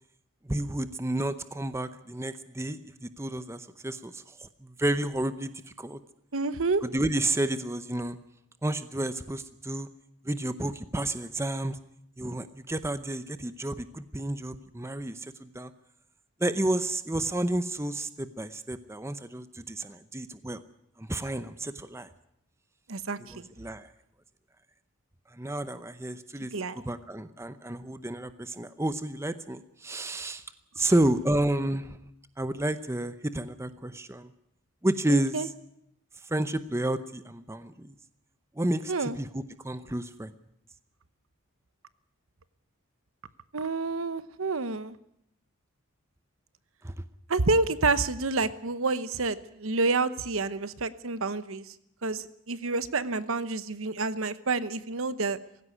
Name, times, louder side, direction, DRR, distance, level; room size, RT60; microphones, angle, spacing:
voice 1, 0.4-5.5 5.8-6.0 6.8-8.2 8.6-9.9 10.2-11.8 12.2-15.7 16.4-20.6 21.0-22.1 23.3-23.9 25.3-30.4 30.8-32.0 32.4-34.3 34.8-35.5 36.2-37.9 38.6-40.3 46.8-46.9, right 1 dB, 10° right, 12 dB, 0.7 m, -31 dB
voice 2, 6.3-6.8 22.9-23.5 26.5-26.8 35.1-35.5 38.9-39.2 43.5-45.0 47.3-51.7 52.0-55.4, right 3 dB, 70° right, 14 dB, 1.0 m, -29 dB
17.5 x 16.0 x 9.8 m, 0.77 s
head